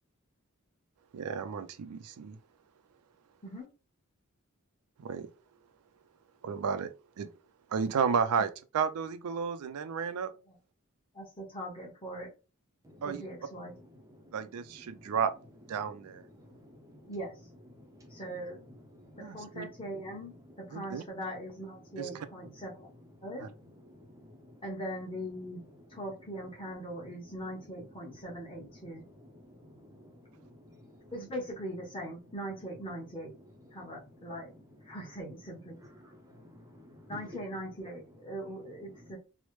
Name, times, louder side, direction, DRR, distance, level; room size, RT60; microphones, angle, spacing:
voice 1, 1.1-2.4 5.0-5.3 6.4-7.3 7.7-10.3 13.0-13.2 14.3-15.3 15.7-16.2 19.2-19.7 20.7-21.0 22.0-22.1 23.4-23.5, right 6 dB, 90° right, 0.4 m, -32 dB
voice 2, 11.1-12.3 13.0-13.7 17.1-17.3 18.1-18.6 19.2-22.9 23.2-23.5 24.6-25.6 25.9-29.0 31.1-33.3 33.7-34.5 34.8-35.8 37.1-39.2, equal, 25° left, 0.9 m, -41 dB
voice 3, 17.8-18.1 19.1-19.2 24.2-24.3 29.6-30.1 30.7-30.8 36.0-36.9, equal, 15° right, 0.4 m, -55 dB
3.1 x 2.0 x 3.0 m
head